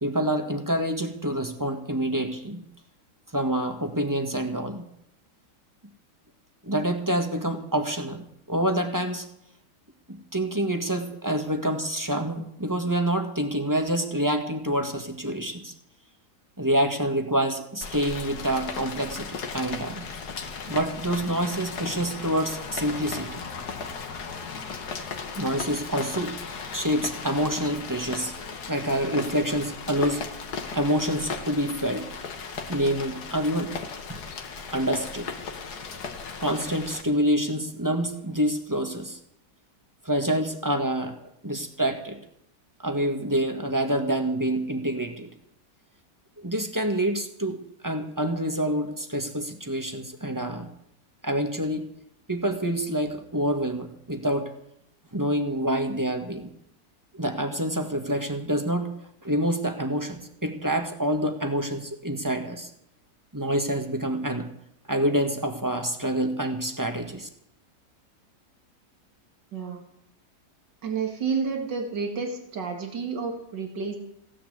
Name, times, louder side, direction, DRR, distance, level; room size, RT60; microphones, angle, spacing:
voice 1, 0.0-2.6 3.3-4.8 6.6-9.3 10.1-15.7 16.6-20.0 20.7-23.4 25.4-26.4 26.7-28.3 28.7-30.2 30.7-32.1 32.7-33.7 34.1-34.2 34.7-35.3 36.4-39.2 40.0-42.2 42.8-45.3 46.4-50.7 51.2-51.9 52.3-54.5 55.1-56.5 57.1-59.0 59.2-62.7 63.3-64.5 64.9-67.3, right 1 dB, 10° right, 5 dB, 1.6 m, -27 dB
Rain, 17.8-37.0, left 5 dB, 65° left, 1.9 m, -36 dB
voice 2, 69.5-69.8 70.8-74.0, right 5 dB, 85° right, 3 dB, 2.7 m, -30 dB
16.0 x 10.0 x 8.1 m, 0.74 s
omnidirectional pair, 1.9 m